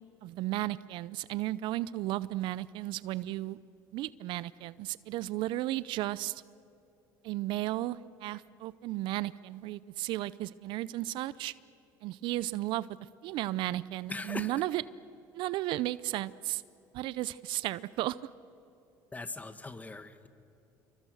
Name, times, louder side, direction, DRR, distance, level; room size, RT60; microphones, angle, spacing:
voice 1, 0.2-3.6 3.9-6.4 7.2-11.5 12.0-12.9 13.2-14.8 15.3-16.6 16.9-18.2, right 16 dB, 65° right, 18 dB, 0.6 m, -34 dB
voice 2, 14.1-14.5 19.1-20.3, left 3 dB, 15° left, 11 dB, 1.7 m, -40 dB
27.5 x 23.0 x 6.4 m, 2.7 s
supercardioid pair, 90°, 9 cm